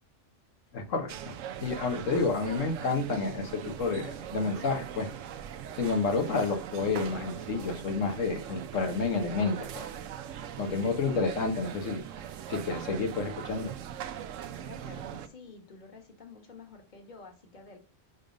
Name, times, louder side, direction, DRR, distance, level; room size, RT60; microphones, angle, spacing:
voice 1, 0.7-1.3 1.6-5.1 5.7-9.9 10.6-12.0 12.5-13.7, left 4 dB, 85° left, 4 dB, 1.4 m, -30 dB
sound 1, 1.1-15.3, right 9 dB, 85° right, 1.0 m, -41 dB
voice 2, 14.6-17.8, left 4 dB, 40° left, 3 dB, 1.4 m, -50 dB
5.3 x 4.1 x 5.0 m, 0.35 s
omnidirectional pair, 1.3 m